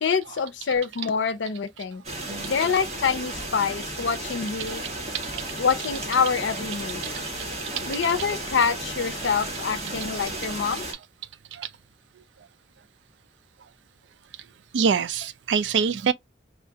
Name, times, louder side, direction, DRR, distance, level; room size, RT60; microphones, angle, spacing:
voice 1, 0.0-2.0 2.5-4.8 5.6-7.0 7.9-10.8, left 6 dB, 85° left, 0.5 m, -26 dB
sound 1, 2.0-10.9, right 1 dB, 40° right, 1.5 m, -34 dB
voice 2, 14.7-16.1, right 6 dB, 80° right, 0.4 m, -24 dB
4.4 x 2.4 x 2.7 m
head